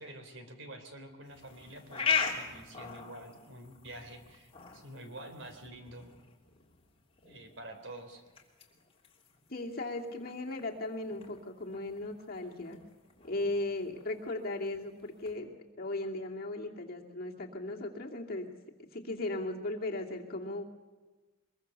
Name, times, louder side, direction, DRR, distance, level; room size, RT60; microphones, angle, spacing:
voice 1, 0.0-6.1 7.2-8.2, right 1 dB, 60° right, 7 dB, 3.6 m, -48 dB
sound 1, 1.3-15.3, left 6 dB, 25° left, 2.9 m, -40 dB
voice 2, 9.5-12.8 13.2-18.5 18.9-20.6, left 2 dB, 45° left, 0 dB, 2.6 m, -37 dB
24.0 x 22.5 x 6.8 m, 1.2 s
head